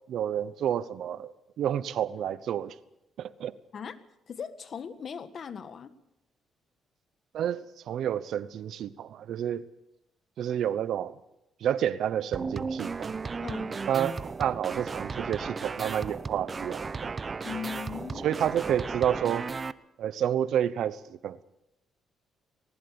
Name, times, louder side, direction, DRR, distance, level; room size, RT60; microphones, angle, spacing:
voice 1, 0.1-2.7 3.2-3.6 7.3-9.7 10.4-11.1 11.6-13.1 13.9-17.1 18.2-19.5 20.0-21.4, right 10 dB, 75° right, 16 dB, 0.9 m, -30 dB
voice 2, 4.3-5.9 13.4-13.9 17.4-18.4, left 7 dB, 50° left, 12 dB, 1.6 m, -39 dB
sound 1, 12.3-19.7, right 4 dB, 35° right, 0.7 m, -35 dB
19.5 x 19.5 x 7.0 m, 0.86 s
cardioid pair, 90°, 0 cm